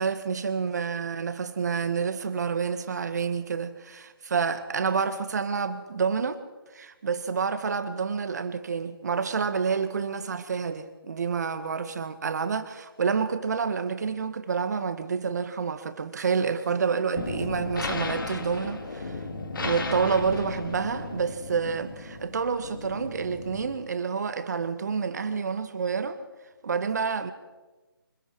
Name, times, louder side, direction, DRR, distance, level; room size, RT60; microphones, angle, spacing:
voice 1, 0.0-6.4 6.7-19.2 19.6-26.2 26.6-27.3, right 5 dB, 45° right, 1.9 m, -28 dB
sound 1, 17.1-23.8, left 3 dB, 60° left, 2.7 m, -35 dB
25.0 x 22.5 x 4.8 m
figure-of-eight pair, 160°, 13 cm